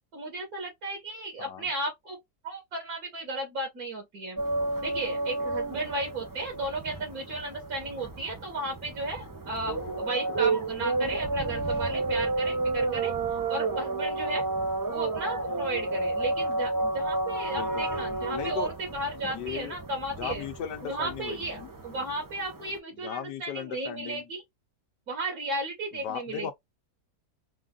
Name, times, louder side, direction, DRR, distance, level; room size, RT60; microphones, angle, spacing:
voice 1, 0.1-2.2 2.4-4.4 4.8-13.1 13.5-14.4 14.9-20.4 20.8-24.4 25.1-26.5, right 2 dB, 60° right, 1.8 m, -34 dB
sound 1, 4.4-22.8, right 2 dB, 25° right, 0.4 m, -31 dB
voice 2, 17.5-18.7 19.3-19.8 20.1-21.7 23.0-24.3 26.0-26.5, left 9 dB, 80° left, 1.4 m, -37 dB
4.1 x 2.5 x 3.7 m
omnidirectional pair, 1.8 m